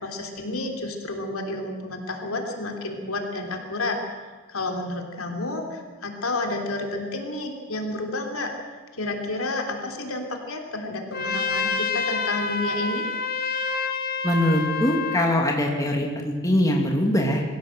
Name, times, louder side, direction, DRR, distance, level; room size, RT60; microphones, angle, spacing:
voice 1, 0.0-4.0 4.5-8.6 9.0-13.1, left 2 dB, 75° left, 3 dB, 3.2 m, -30 dB
Trumpet, 11.1-15.4, left 4 dB, 40° left, 1.4 m, -27 dB
voice 2, 14.2-17.4, left 1 dB, 15° left, 0 dB, 2.4 m, -22 dB
22.5 x 16.0 x 7.8 m, 1.4 s
head